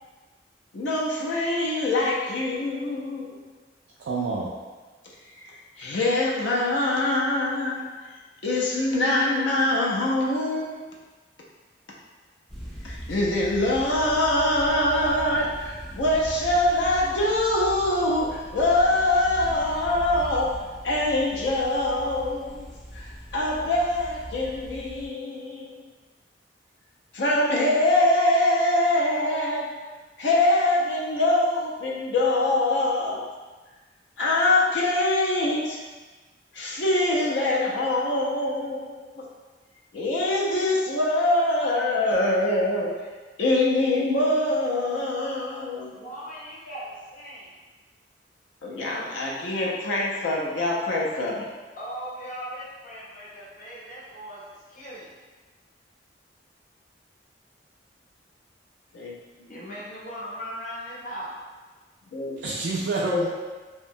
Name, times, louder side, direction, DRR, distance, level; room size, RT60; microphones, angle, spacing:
voice 1, 0.7-3.4 5.4-7.8 8.4-10.7 12.8-20.5 20.8-25.8 27.1-29.7 30.2-33.2 34.2-35.8 36.5-39.2 39.9-42.9 43.4-45.9 48.6-51.5 58.9-59.1 59.4-59.5 62.1-62.4 63.1-63.3, left 1 dB, 75° left, -3 dB, 0.4 m, -24 dB
voice 2, 4.0-4.5 62.4-63.3, right 3 dB, 70° right, -4 dB, 0.3 m, -27 dB
sound 1, 12.5-25.1, equal, ahead, 0.4 m, -40 dB
voice 3, 45.9-47.5 51.8-55.2 59.5-61.3, equal, 50° left, -7 dB, 0.8 m, -38 dB
2.7 x 2.1 x 2.5 m, 1.3 s
head